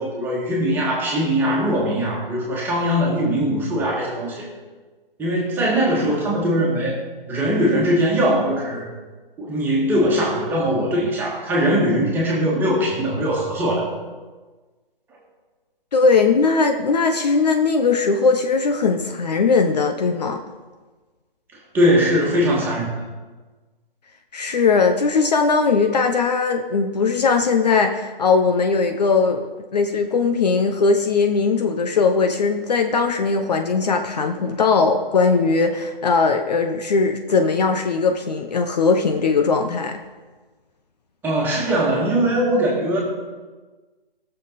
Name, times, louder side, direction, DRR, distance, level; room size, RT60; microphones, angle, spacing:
voice 1, 0.0-4.5 5.2-7.0 7.3-8.9 9.4-13.9 21.7-22.9 41.2-43.0, equal, 5° right, -4 dB, 1.9 m, -21 dB
voice 2, 15.9-20.4 24.3-40.0, left 4 dB, 45° left, 5 dB, 0.8 m, -19 dB
18.5 x 6.8 x 4.1 m, 1.3 s
hypercardioid pair, 155°, 29 cm